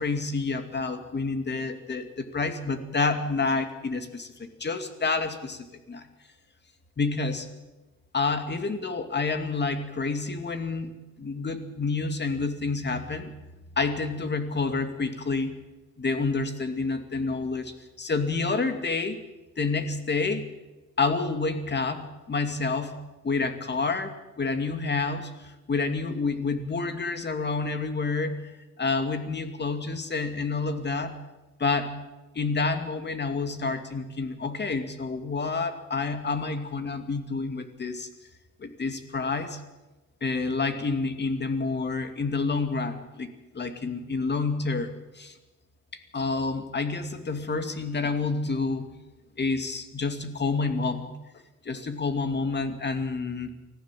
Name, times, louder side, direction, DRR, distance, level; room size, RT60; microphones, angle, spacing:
voice 1, 0.0-6.0 7.0-7.5 8.1-10.9 11.2-13.3 13.8-15.6 16.0-19.2 19.6-20.5 21.0-31.2 31.6-32.0 32.3-38.1 38.6-39.6 40.2-43.3 43.5-45.3 46.1-48.9 49.4-51.2 51.6-53.5, left 4 dB, 35° left, 8 dB, 2.6 m, -29 dB
24.5 x 15.0 x 7.7 m, 1.1 s
cardioid pair, 90°, 30 cm